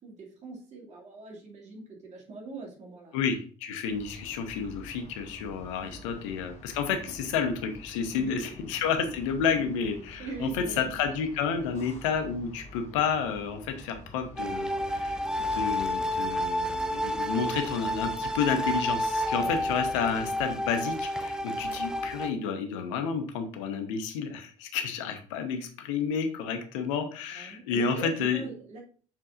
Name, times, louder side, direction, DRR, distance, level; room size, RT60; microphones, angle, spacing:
voice 1, 0.0-3.2 4.1-4.3 5.8-6.2 7.1-7.2 8.2-8.6 10.2-11.0 19.4-19.7 27.3-28.8, right 3 dB, 40° right, -2 dB, 2.3 m, -42 dB
voice 2, 3.1-28.4, left 6 dB, 65° left, 7 dB, 0.9 m, -30 dB
sound 1, 3.9-20.7, equal, 40° left, 1.7 m, -48 dB
sound 2, 14.4-22.3, equal, 5° right, 0.8 m, -30 dB
7.0 x 5.6 x 2.5 m, 0.41 s
figure-of-eight pair, 50°, 17 cm